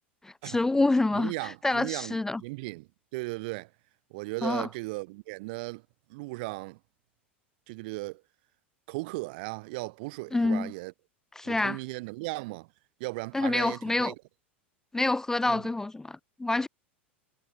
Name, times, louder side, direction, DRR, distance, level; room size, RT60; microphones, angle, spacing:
voice 1, 0.2-2.4 4.4-4.7 10.3-10.7 11.4-11.8 13.3-14.1 14.9-16.7, left 2 dB, 5° left, 0.5 m, -27 dB
voice 2, 1.1-3.7 4.1-5.8 6.1-6.8 7.7-8.2 8.9-10.9 11.4-12.7 13.0-14.1 15.4-15.6, right 25 dB, 50° right, 1.4 m, -36 dB
figure-of-eight pair, 85°, 6 cm